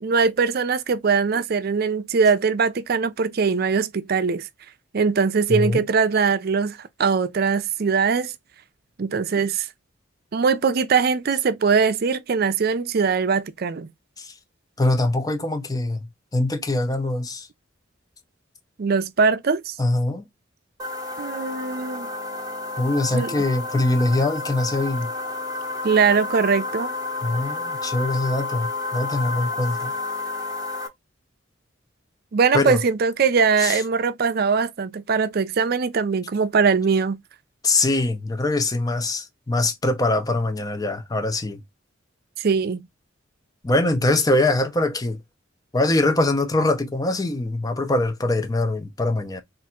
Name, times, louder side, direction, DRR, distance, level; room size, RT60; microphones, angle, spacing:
voice 1, 0.0-4.5 4.9-8.3 9.0-9.7 10.3-13.9 18.8-19.7 21.2-22.1 23.1-23.4 25.8-26.9 32.3-37.2 42.4-42.9, right 5 dB, 50° right, 0.5 m, -21 dB
voice 2, 5.5-5.9 14.2-14.3 14.8-16.0 16.3-17.5 19.8-20.3 22.8-25.1 27.2-29.9 32.5-32.8 33.6-33.8 37.6-41.6 43.6-45.2 45.7-49.4, left 2 dB, 20° left, 0.6 m, -23 dB
sound 1, 20.8-30.9, left 3 dB, 20° right, 0.9 m, -30 dB
3.5 x 2.5 x 4.2 m
head